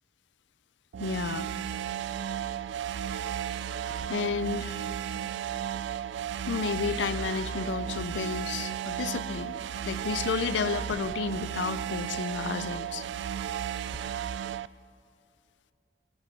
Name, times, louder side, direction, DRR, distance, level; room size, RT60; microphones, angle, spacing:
Space Station Alarm, 0.9-14.7, right 9 dB, 85° right, 0.3 m, -34 dB
voice 1, 1.0-1.5 4.1-4.8 6.5-9.6 9.8-13.0, left 5 dB, 90° left, 16 dB, 0.4 m, -32 dB
sound 1, 3.9-4.6 5.3-5.4 5.7-5.8 6.7-8.4 9.4-9.5 9.9-10.4 10.8-11.2 12.7-12.8 13.8-14.2 14.5-14.7, left 1 dB, 10° left, 0.6 m, -45 dB
11.5 x 9.0 x 7.0 m, 2.6 s
head